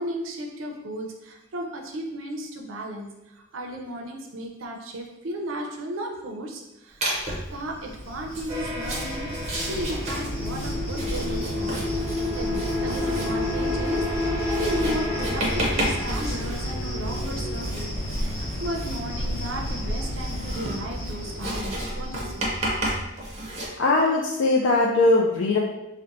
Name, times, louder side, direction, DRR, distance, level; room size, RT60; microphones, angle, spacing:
voice 1, 0.0-3.1 3.5-7.0 7.5-11.8 12.3-17.9 18.2-22.8, right 1 dB, 80° right, 2 dB, 0.5 m, -35 dB
Writing, 7.0-7.5 8.2-23.7, right 1 dB, 35° right, 0.6 m, -32 dB
Cricket, 7.2-22.9, equal, 30° left, 0.8 m, -33 dB
sound 1, 8.5-17.5, left 2 dB, 20° right, 1.0 m, -30 dB
voice 2, 23.8-25.6, left 2 dB, 65° left, -1 dB, 0.3 m, -20 dB
3.9 x 2.1 x 2.5 m, 0.96 s
head